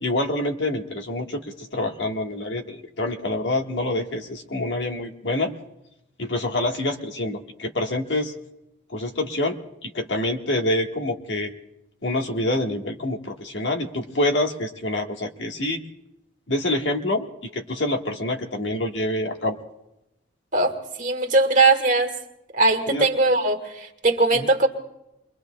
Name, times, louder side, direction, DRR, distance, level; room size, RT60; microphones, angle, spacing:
voice 1, 0.0-5.5 6.2-8.3 8.9-9.6 9.8-11.5 12.0-15.8 16.5-17.3 17.5-19.6 22.9-23.1 24.3-24.5, left 1 dB, 70° left, 3 dB, 1.4 m, -26 dB
voice 2, 20.5-22.1 22.5-24.7, right 2 dB, 45° right, 3 dB, 1.6 m, -20 dB
29.0 x 22.0 x 2.2 m, 0.90 s
head